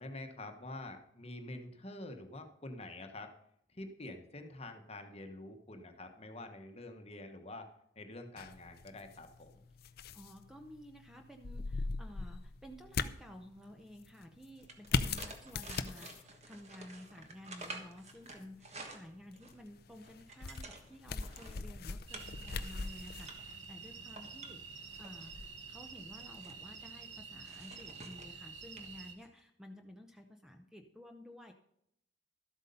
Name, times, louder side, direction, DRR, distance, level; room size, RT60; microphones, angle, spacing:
voice 1, 0.0-3.3 3.7-7.7 8.0-9.6, left 2 dB, 30° left, 5 dB, 1.1 m, -47 dB
sound 1, 8.4-26.4, left 4 dB, 50° left, 0.5 m, -42 dB
voice 2, 10.1-31.5, left 1 dB, 5° right, 4 dB, 0.7 m, -53 dB
sound 2, 14.6-19.6 20.0-21.6 22.1-22.5 22.9-23.5 24.0-25.3 26.0-26.6 27.5-28.4 28.8-28.9 29.2-29.4, right 3 dB, 35° right, 1.4 m, -50 dB
sound 3, 22.1-29.1, right 5 dB, 65° right, 1.3 m, -49 dB
12.5 x 8.1 x 5.4 m, 0.74 s
head